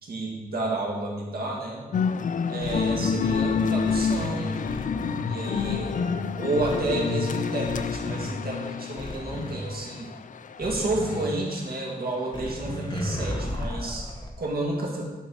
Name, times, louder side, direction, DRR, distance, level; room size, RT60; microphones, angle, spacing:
voice 1, 0.0-1.8 2.5-4.7 5.2-6.0 6.3-10.1 10.6-15.1, right 2 dB, 80° right, -3 dB, 2.2 m, -31 dB
sound 1, 1.9-11.4, left 6 dB, 55° left, 0.4 m, -28 dB
sound 2, 2.6-5.2 5.5-6.1 6.6-7.1 7.6-8.3 9.0-9.5 10.6-11.2 12.3-14.3, left 1 dB, 25° left, 1.1 m, -33 dB
11.5 x 4.3 x 5.7 m, 1.2 s
wide cardioid pair, 135°, 16 cm